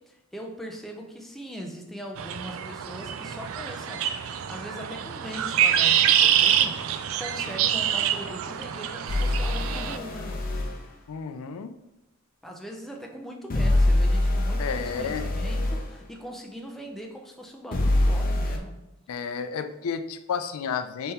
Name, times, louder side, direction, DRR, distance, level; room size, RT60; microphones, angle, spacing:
voice 1, 0.0-6.8 7.2-10.5 12.4-18.8, equal, ahead, 0 dB, 0.5 m, -40 dB
sound 1, 2.2-10.0, right 9 dB, 70° right, 0.3 m, -25 dB
sound 2, 9.1-10.8 13.5-15.8 17.7-18.6, left 1 dB, 40° left, 0.6 m, -24 dB
voice 2, 11.1-11.7 14.6-15.3 19.1-21.1, left 6 dB, 85° left, 9 dB, 0.4 m, -31 dB
3.6 x 3.4 x 4.2 m, 0.93 s
head